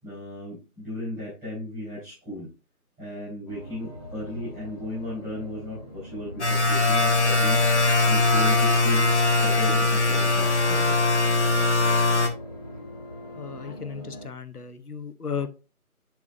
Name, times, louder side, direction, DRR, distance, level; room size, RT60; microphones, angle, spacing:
voice 1, 0.0-2.5 3.0-9.1 9.4-10.9, left 1 dB, 5° right, -14 dB, 4.3 m, -36 dB
sound 1, 3.5-14.3, equal, 25° left, 1.2 m, -42 dB
sound 2, 6.4-12.3, left 3 dB, 50° left, 1.4 m, -21 dB
voice 2, 13.4-15.5, left 6 dB, 90° left, 11 dB, 1.1 m, -35 dB
7.5 x 7.1 x 2.6 m, 0.31 s
figure-of-eight pair, 165°, 44 cm